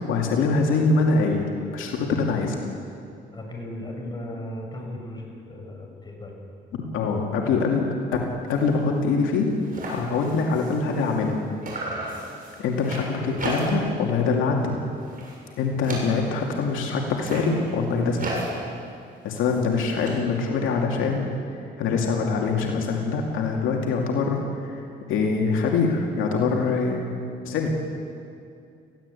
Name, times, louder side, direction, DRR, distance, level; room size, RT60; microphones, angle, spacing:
voice 1, 0.0-2.6 6.7-8.2 8.5-9.5 9.9-11.3 12.6-14.7 15.6-18.3 19.2-21.3 21.5-27.1 27.4-27.7, left 4 dB, 90° left, 0 dB, 2.5 m, -24 dB
voice 2, 3.3-6.4, left 1 dB, 20° left, 0 dB, 6.5 m, -36 dB
sound 1, 8.5-8.7 9.1-9.2 9.4-11.4 11.6-14.0 14.3-14.7 15.0-16.5 17.1-20.1, right 1 dB, 45° right, 7.3 m, -35 dB
21.0 x 16.0 x 8.4 m, 2.4 s
cardioid pair, 90°, 20 cm